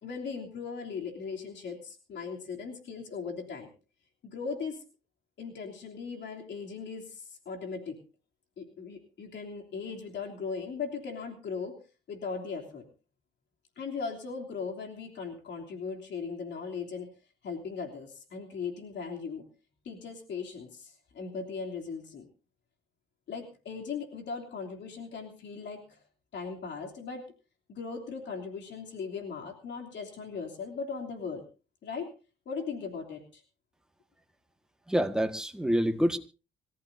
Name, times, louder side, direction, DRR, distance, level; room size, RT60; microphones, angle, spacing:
voice 1, 0.0-3.7 4.2-4.8 5.4-8.0 8.6-11.8 12.1-12.9 13.8-17.1 17.4-19.4 19.8-22.3 23.3-26.0 26.3-27.2 27.7-31.4 31.8-32.1 32.4-33.4, left 5 dB, 65° left, 2 dB, 3.2 m, -38 dB
voice 2, 34.9-36.2, equal, 5° right, 6 dB, 1.7 m, -27 dB
26.0 x 14.0 x 2.8 m, 0.34 s
cardioid pair, 90°, 20 cm